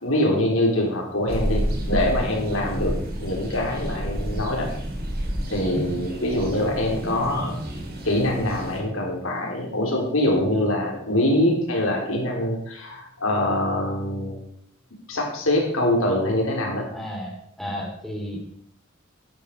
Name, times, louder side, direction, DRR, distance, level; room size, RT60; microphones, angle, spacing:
voice 1, 0.0-4.7 5.5-7.6 8.0-14.4 15.1-16.9, left 1 dB, 70° left, 0 dB, 3.8 m, -24 dB
sound 1, 1.3-8.8, equal, 50° right, 2.9 m, -30 dB
voice 2, 16.9-18.4, equal, ahead, -1 dB, 2.7 m, -32 dB
12.0 x 11.5 x 4.7 m, 0.69 s
head